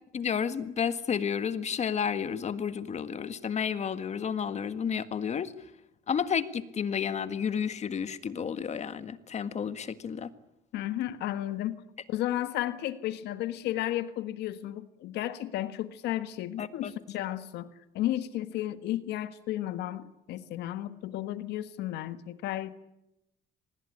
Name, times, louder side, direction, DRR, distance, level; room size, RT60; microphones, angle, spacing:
voice 1, 0.1-5.5 6.1-10.3 16.6-16.9, left 7 dB, 40° left, 12 dB, 1.7 m, -31 dB
voice 2, 10.7-11.8 12.1-22.7, left 13 dB, 80° left, 12 dB, 1.5 m, -33 dB
25.0 x 20.0 x 9.8 m, 0.86 s
cardioid pair, 110°, 17 cm